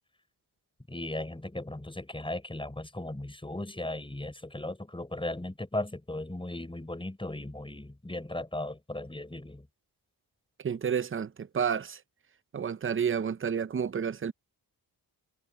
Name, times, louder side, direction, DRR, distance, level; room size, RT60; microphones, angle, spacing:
voice 1, 0.9-9.7, left 1 dB, 10° left, 6.1 m, -37 dB
voice 2, 10.6-12.0 12.5-14.3, right 7 dB, 30° right, 0.5 m, -30 dB
wide cardioid pair, 120°, 42 cm